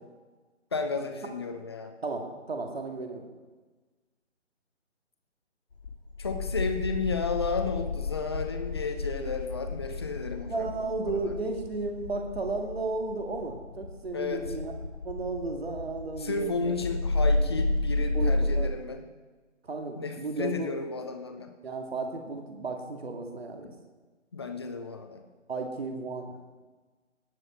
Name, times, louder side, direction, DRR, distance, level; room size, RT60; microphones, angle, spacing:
voice 1, 0.7-1.9 6.2-11.4 14.1-14.5 16.2-19.1 20.0-21.5 24.3-25.3, left 4 dB, 20° left, 5 dB, 0.8 m, -33 dB
voice 2, 2.0-3.3 10.5-14.7 15.0-16.7 18.1-18.7 19.6-20.7 21.6-23.7 25.5-26.5, right 3 dB, 55° right, 3 dB, 2.2 m, -34 dB
sound 1, 5.7-18.7, left 2 dB, 55° left, 1.9 m, -31 dB
18.5 x 7.4 x 4.4 m, 1.3 s
figure-of-eight pair, 150°, 37 cm